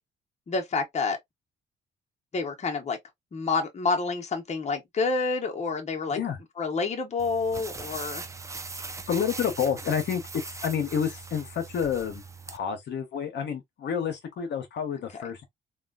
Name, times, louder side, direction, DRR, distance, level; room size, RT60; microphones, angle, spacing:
voice 1, 0.5-1.2 2.3-3.0 3.3-6.2 6.6-8.2, left 4 dB, 35° left, 0.9 m, -28 dB
sound 1, 7.2-12.6, right 4 dB, 15° right, 0.4 m, -40 dB
voice 2, 9.1-15.5, left 7 dB, 65° left, 0.8 m, -29 dB
3.0 x 2.3 x 2.3 m
cardioid pair, 90°, 20 cm